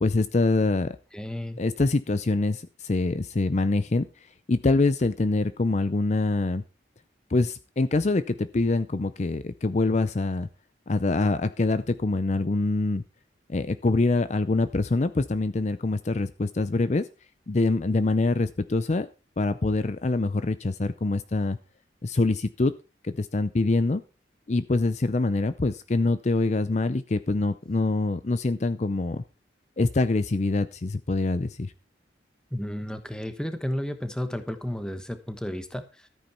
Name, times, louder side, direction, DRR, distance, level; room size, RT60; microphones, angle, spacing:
voice 1, 0.0-1.0 1.6-6.6 7.3-10.5 10.9-13.0 13.5-17.1 17.5-19.1 19.4-21.6 22.0-22.7 23.0-24.0 24.5-29.2 29.8-31.7, left 3 dB, 35° left, 12 dB, 0.5 m, -25 dB
voice 2, 1.1-1.6 32.5-36.1, equal, 5° left, 9 dB, 1.1 m, -32 dB
13.5 x 9.2 x 4.4 m, 0.32 s
head